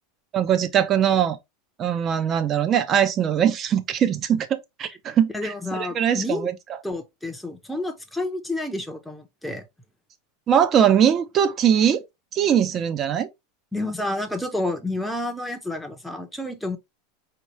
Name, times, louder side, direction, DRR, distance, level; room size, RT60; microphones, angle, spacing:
voice 1, 0.3-1.4 1.8-6.5 10.5-12.0 12.3-13.3, right 9 dB, 30° right, 0.7 m, -21 dB
voice 2, 5.3-6.5 6.8-9.6 13.7-16.8, left 2 dB, ahead, 0.8 m, -29 dB
4.6 x 2.9 x 3.0 m
supercardioid pair, 135°, 0 cm